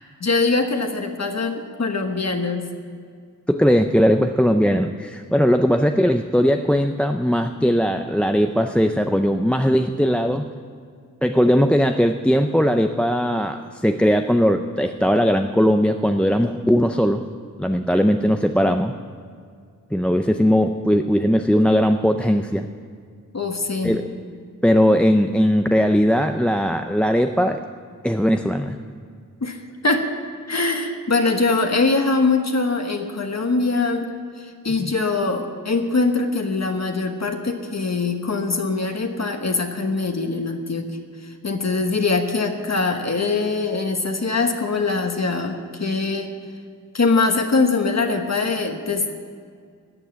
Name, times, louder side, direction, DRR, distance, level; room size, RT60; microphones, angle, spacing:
voice 1, 0.2-2.6 23.3-24.0 29.4-30.1 30.5-34.1 34.4-40.8 41.2-46.3 46.9-49.1, left 3 dB, 50° left, 4 dB, 1.2 m, -22 dB
voice 2, 3.5-10.5 11.2-17.3 17.6-18.9 19.9-22.7 23.8-24.0 24.6-27.6 28.0-28.8 34.8-34.9, equal, 5° left, 6 dB, 0.5 m, -19 dB
14.0 x 8.2 x 9.5 m, 2.1 s
wide cardioid pair, 90°, 34 cm